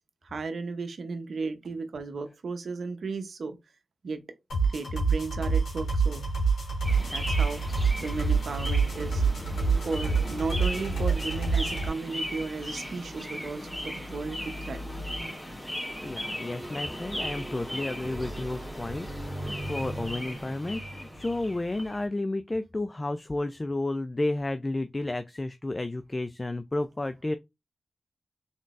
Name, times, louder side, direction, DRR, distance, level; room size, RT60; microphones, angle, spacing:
voice 1, 0.2-3.6 4.0-4.2 4.6-6.3 7.0-7.6 8.0-14.8, right 4 dB, 70° right, 0.7 m, -35 dB
sound 1, 4.5-11.9, right 4 dB, 90° left, 2.6 m, -27 dB
sound 2, 6.8-22.1, equal, 10° left, 1.3 m, -37 dB
voice 2, 16.0-27.4, left 2 dB, 30° left, 0.4 m, -32 dB
3.8 x 3.7 x 2.5 m
cardioid pair, 45°, 0 cm